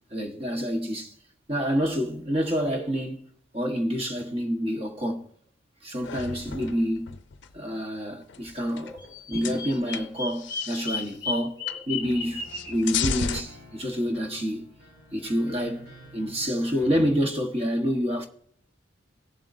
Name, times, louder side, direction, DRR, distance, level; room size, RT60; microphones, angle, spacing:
voice 1, 0.1-1.1 1.5-3.2 3.5-5.3 5.8-7.1 7.5-9.0 9.3-14.7 15.1-18.3, equal, 30° right, 1.2 m, -28 dB
sound 1, 6.0-7.5 8.3-9.1 9.4-11.1 11.7-11.8 12.1-13.4, left 7 dB, 60° left, 0.5 m, -34 dB
Bird vocalization bird call bird song, 9.0-12.8, left 4 dB, 20° left, 1.3 m, -34 dB
sound 2, 12.0-17.1, left 1 dB, 85° right, 3.2 m, -49 dB
18.0 x 7.4 x 2.6 m
head